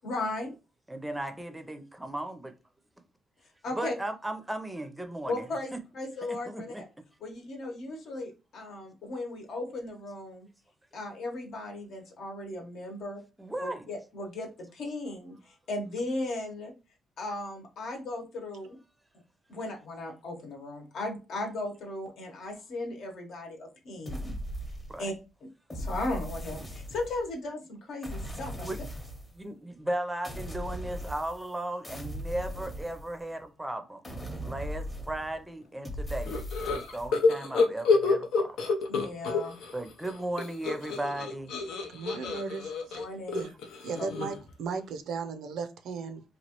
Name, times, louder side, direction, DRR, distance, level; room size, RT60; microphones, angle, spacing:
voice 1, 0.0-0.6 3.6-3.9 5.3-6.9 7.2-10.5 10.9-13.2 13.6-16.7 17.2-18.8 19.5-24.3 25.0-25.1 25.4-28.7 38.9-39.5 42.9-43.4 44.0-44.1, left 2 dB, 70° left, 1.0 m, -36 dB
voice 2, 0.9-2.5 3.7-5.4 6.5-6.8 13.4-13.9 24.9-25.1 28.6-28.8 29.3-34.0 34.4-36.4 36.7-38.6 39.7-41.5, right 1 dB, 10° right, 0.5 m, -36 dB
sound 1, 24.1-25.2 25.7-27.3 28.0-29.4 30.2-31.6 31.8-33.4 34.0-35.4 35.8-37.1, equal, 20° left, 0.8 m, -38 dB
sound 2, 36.3-39.7 40.0-44.5, left 4 dB, 90° left, 0.5 m, -28 dB
voice 3, 41.9-43.0 43.3-43.5 43.8-46.2, right 5 dB, 75° right, 0.4 m, -36 dB
3.0 x 2.4 x 2.9 m
cardioid pair, 90°, 0 cm